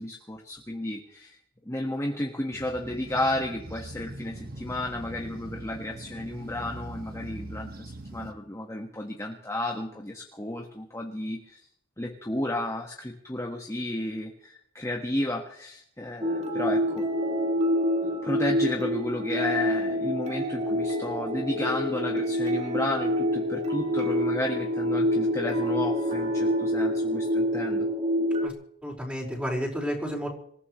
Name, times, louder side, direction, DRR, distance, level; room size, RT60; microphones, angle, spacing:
voice 1, 0.0-1.4 1.6-11.6 12.0-17.0 18.0-27.9, left 1 dB, 15° left, 0 dB, 1.6 m, -32 dB
sound 1, 2.5-8.3, right 1 dB, 50° right, 1.5 m, -41 dB
sound 2, 16.2-28.5, equal, 35° right, 2.1 m, -27 dB
voice 2, 28.8-30.3, equal, 5° right, -2 dB, 4.9 m, -31 dB
26.5 x 15.5 x 3.2 m, 0.66 s
head